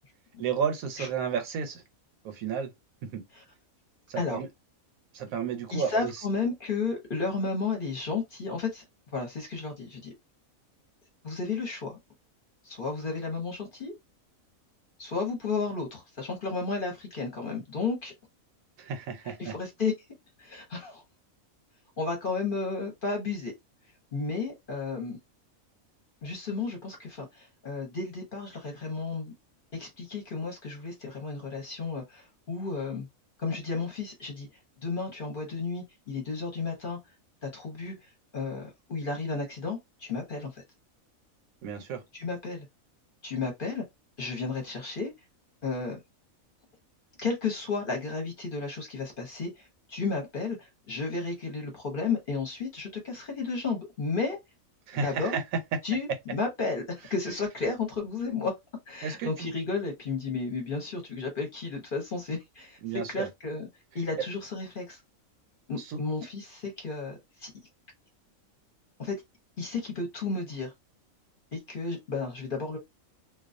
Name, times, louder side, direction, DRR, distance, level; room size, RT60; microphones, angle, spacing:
voice 1, 0.4-1.8 2.2-2.7 3.0-3.2 4.1-4.5 5.1-6.1 18.8-19.5 41.6-42.0 54.9-55.4 55.7-55.8 59.0-59.5 62.8-63.3 65.8-66.0, right 6 dB, 80° right, 1.1 m, -32 dB
voice 2, 5.7-8.8 9.1-10.1 11.2-12.0 12.6-13.9 15.0-18.1 19.2-19.9 20.4-21.0 22.0-23.5 24.1-25.2 26.2-29.3 29.7-33.1 33.4-34.5 34.8-37.0 37.4-40.6 42.1-42.7 43.2-43.8 44.2-45.1 45.6-46.0 47.2-54.4 55.0-55.4 55.8-58.5 58.9-62.8 63.1-63.7 63.9-65.0 65.7-67.5 69.0-69.2 69.6-70.7 71.5-72.8, left 4 dB, 45° left, 0.9 m, -33 dB
2.3 x 2.3 x 2.5 m
omnidirectional pair, 1.5 m